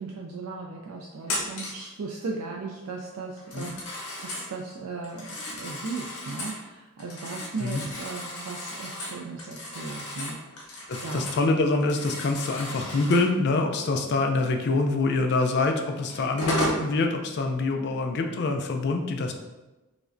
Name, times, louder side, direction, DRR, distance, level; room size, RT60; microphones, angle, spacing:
voice 1, 0.0-11.3, right 4 dB, 75° right, -1 dB, 0.4 m, -37 dB
Telephone, 1.2-1.9 3.4-4.5 5.0-6.6 7.0-11.5 11.8-13.3 15.4-15.5 16.1-16.9, left 1 dB, 85° left, 1.1 m, -34 dB
voice 2, 10.9-19.3, left 3 dB, 50° left, 4 dB, 0.3 m, -25 dB
4.8 x 2.1 x 2.5 m, 1.1 s
head